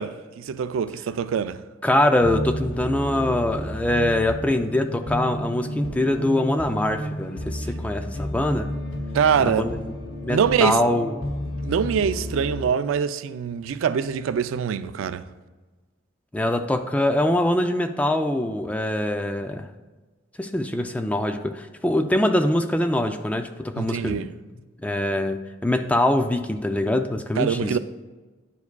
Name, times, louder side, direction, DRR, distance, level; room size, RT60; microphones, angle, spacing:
voice 1, 0.0-1.6 9.1-9.7 10.3-10.8 11.6-15.3 23.8-24.3 27.4-27.8, right 7 dB, 90° right, 0.3 m, -24 dB
voice 2, 1.8-8.7 9.4-9.8 10.2-11.2 16.3-19.7 20.4-24.3 24.8-27.8, left 1 dB, 5° left, 0.3 m, -23 dB
sound 1, 2.2-12.7, equal, 70° left, 0.7 m, -32 dB
10.5 x 4.8 x 2.2 m
head